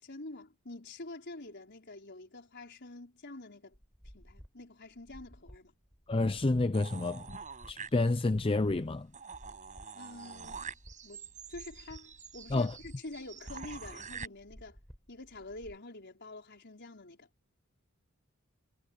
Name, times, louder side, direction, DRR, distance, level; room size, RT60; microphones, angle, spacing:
voice 1, 0.0-3.8 4.1-5.8 9.9-10.7 11.0-14.8 15.1-17.3, left 2 dB, 55° left, 5.0 m, -47 dB
sound 1, 3.7-15.8, equal, 5° left, 6.0 m, -55 dB
voice 2, 6.1-7.4 7.7-9.1 12.5-12.8, left 2 dB, 25° left, 0.5 m, -29 dB
sound 2, 6.7-8.4 8.8-8.9 9.1-14.3, right 5 dB, 35° right, 6.8 m, -46 dB
head